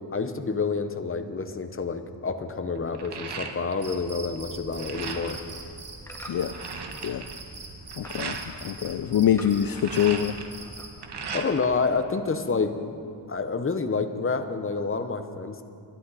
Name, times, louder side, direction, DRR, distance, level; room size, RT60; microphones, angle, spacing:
voice 1, 0.1-5.4 11.3-12.7 13.3-15.6, left 4 dB, 30° left, 8 dB, 0.9 m, -28 dB
sound 1, 1.5-1.8 2.2-4.0 4.3-5.5 6.0-6.1 6.2-8.5 9.5-11.8 12.1-13.0, right 5 dB, 60° right, 1.2 m, -38 dB
Cricket, 3.8-11.0, right 3 dB, 75° right, 2.2 m, -42 dB
sound 2, 5.9-7.1 7.5-8.3 8.6-10.3 10.6-11.2 11.6-11.7, right 1 dB, 5° left, 1.6 m, -47 dB
voice 2, 8.0-10.4, left 10 dB, 50° left, 10 dB, 0.5 m, -24 dB
23.0 x 11.5 x 4.1 m, 2.5 s
wide cardioid pair, 110°, 46 cm